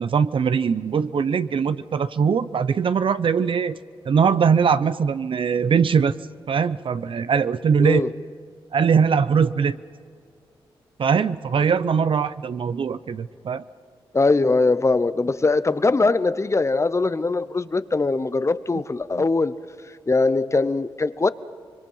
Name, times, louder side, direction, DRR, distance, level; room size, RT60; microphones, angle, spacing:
voice 1, 0.0-3.8 4.1-6.2 6.5-8.1 8.7-9.8 11.0-13.6 19.2-19.3, right 6 dB, 60° right, 0.7 m, -21 dB
voice 2, 14.1-19.5 20.1-21.3, left 3 dB, 30° left, 0.8 m, -21 dB
25.5 x 22.5 x 5.6 m
cardioid pair, 65°, 10 cm